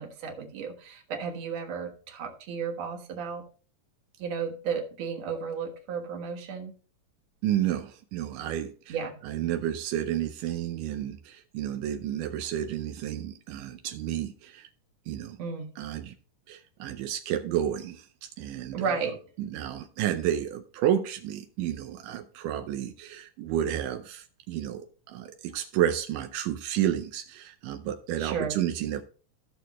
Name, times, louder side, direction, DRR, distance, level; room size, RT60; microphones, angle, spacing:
voice 1, 0.0-3.4 4.2-6.8 8.9-9.2 15.4-15.7 18.7-19.2 28.2-28.6, right 6 dB, 60° right, 2.5 m, -33 dB
voice 2, 7.4-9.0 9.2-14.7 15.1-15.4 15.8-16.1 16.5-19.0 19.4-29.0, right 11 dB, 85° right, 2.3 m, -31 dB
15.0 x 6.5 x 3.0 m
omnidirectional pair, 3.7 m